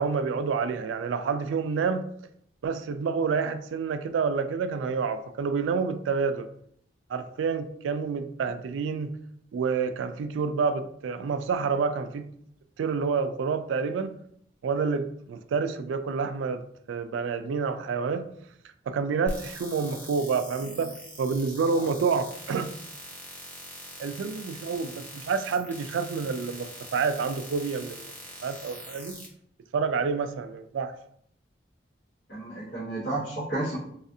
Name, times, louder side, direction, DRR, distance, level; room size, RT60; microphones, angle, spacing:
voice 1, 0.0-2.0 2.6-6.5 7.1-9.2 9.5-12.3 12.8-14.2 14.6-16.6 16.9-18.2 18.9-22.7 24.0-28.1 28.4-29.1 29.7-30.9, right 5 dB, 90° right, 10 dB, 0.3 m, -28 dB
sound 1, 19.3-29.3, equal, 10° left, 0.7 m, -43 dB
voice 2, 32.3-33.8, right 2 dB, 55° left, -9 dB, 1.2 m, -32 dB
4.1 x 2.4 x 2.7 m, 0.70 s
head